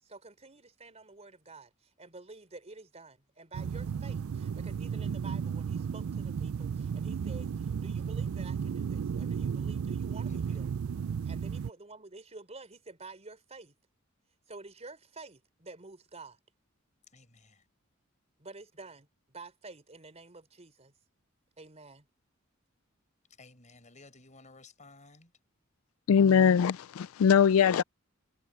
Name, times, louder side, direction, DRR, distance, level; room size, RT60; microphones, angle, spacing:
voice 1, 0.0-10.7 11.2-13.8 14.5-16.4 18.4-20.9 21.6-22.1, right 3 dB, 30° right, 3.9 m, -50 dB
sound 1, 3.5-11.7, right 7 dB, 85° right, 0.4 m, -34 dB
voice 2, 17.1-17.6 23.4-25.3, left 3 dB, 35° left, 5.0 m, -55 dB
voice 3, 26.1-27.8, left 7 dB, 75° left, 0.4 m, -22 dB
head